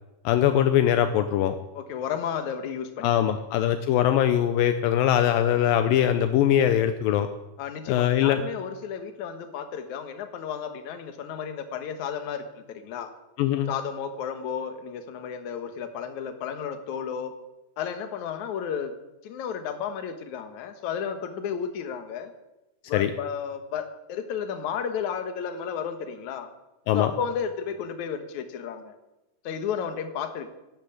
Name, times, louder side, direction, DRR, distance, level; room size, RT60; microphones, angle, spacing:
voice 1, 0.3-1.6 3.0-7.3 7.9-8.4 13.4-13.7 22.9-23.1 26.9-27.1, left 10 dB, 80° left, 9 dB, 2.5 m, -22 dB
voice 2, 1.7-3.4 7.6-13.1 13.7-17.3 17.8-18.9 19.2-22.3 22.9-26.5 26.9-28.9 29.4-30.5, left 7 dB, 60° left, 7 dB, 2.6 m, -33 dB
13.5 x 12.0 x 8.5 m, 0.99 s
omnidirectional pair, 4.1 m